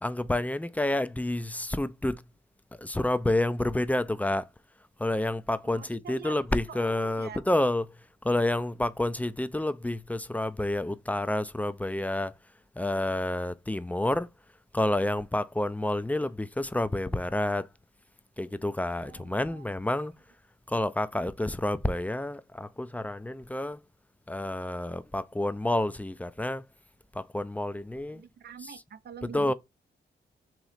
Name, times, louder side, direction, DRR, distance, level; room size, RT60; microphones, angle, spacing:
voice 1, 0.0-2.2 2.8-4.5 5.0-8.0 8.2-12.3 12.8-14.3 14.7-17.7 18.4-20.1 20.7-23.8 24.3-26.7 27.1-28.2 28.6-28.7 29.3-29.5, left 1 dB, 10° left, 0.4 m, -29 dB
voice 2, 5.6-7.4 19.0-19.6 28.1-29.5, right 7 dB, 55° right, 0.5 m, -45 dB
3.1 x 3.0 x 4.0 m
supercardioid pair, 45°, 20 cm